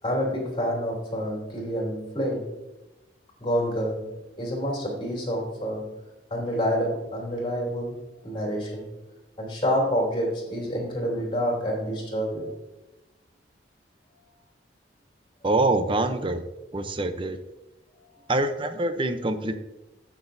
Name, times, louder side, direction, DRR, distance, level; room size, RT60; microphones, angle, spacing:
voice 1, 0.0-2.6 3.4-6.0 6.3-8.9 9.4-12.5 18.0-18.1, equal, 30° left, -1 dB, 3.1 m, -28 dB
voice 2, 15.4-16.4 16.7-17.4 18.3-19.5, right 2 dB, 30° right, 9 dB, 0.6 m, -25 dB
16.5 x 6.1 x 2.7 m, 0.98 s
head